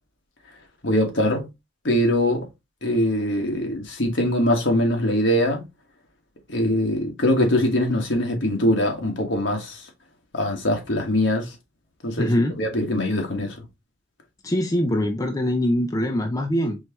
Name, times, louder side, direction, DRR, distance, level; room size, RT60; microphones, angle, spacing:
voice 1, 0.8-1.5 1.8-2.5 2.8-5.6 6.5-9.8 10.3-11.5 12.0-12.3 12.6-13.6, left 1 dB, 65° left, 1.4 m, -22 dB
voice 2, 12.2-12.6 14.4-16.8, left 1 dB, 15° left, 0.4 m, -23 dB
4.5 x 3.3 x 2.9 m
head